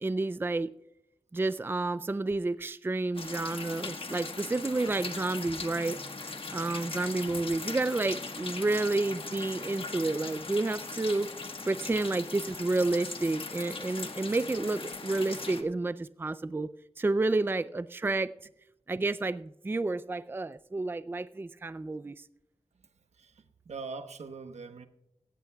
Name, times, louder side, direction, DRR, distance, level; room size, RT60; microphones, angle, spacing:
voice 1, 0.0-0.7 1.3-6.0 6.5-11.3 11.6-18.3 18.9-22.2, right 2 dB, 20° right, 0.4 m, -30 dB
sound 1, 3.1-15.6, left 3 dB, 55° left, 1.4 m, -39 dB
voice 2, 22.7-24.9, right 4 dB, 85° right, 1.0 m, -43 dB
18.0 x 15.0 x 2.3 m
wide cardioid pair, 75°, 11 cm